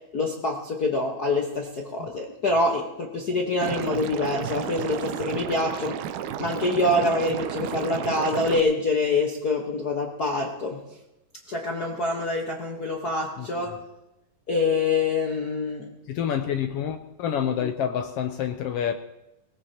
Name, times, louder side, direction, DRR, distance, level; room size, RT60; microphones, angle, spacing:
voice 1, 0.1-6.0 6.4-10.8 11.5-13.7 14.5-15.9, left 2 dB, 55° left, 1.1 m, -25 dB
Liquid, 3.6-8.6, right 9 dB, 85° right, 2.2 m, -32 dB
voice 2, 16.1-18.9, left 8 dB, 80° left, 1.3 m, -28 dB
20.5 x 18.0 x 2.8 m
omnidirectional pair, 3.5 m